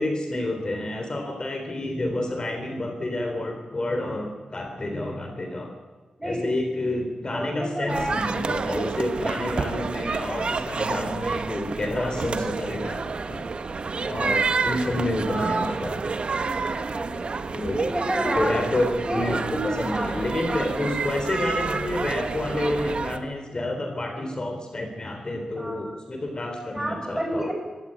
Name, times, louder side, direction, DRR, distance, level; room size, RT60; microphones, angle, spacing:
voice 1, 0.0-5.7 6.2-13.5 14.1-16.1 17.5-17.8 18.4-27.5, left 1 dB, 35° left, 5 dB, 3.6 m, -29 dB
voice 2, 7.3-8.6 8.8-9.2 14.0-14.3 16.8-17.5 17.7-18.6 19.0-20.7 25.6-25.9 26.7-27.5, equal, 15° right, 2 dB, 7.2 m, -31 dB
sound 1, 7.9-23.2, right 4 dB, 50° right, 1.4 m, -29 dB
23.0 x 15.5 x 9.8 m, 1.3 s
wide cardioid pair, 85°, 2 cm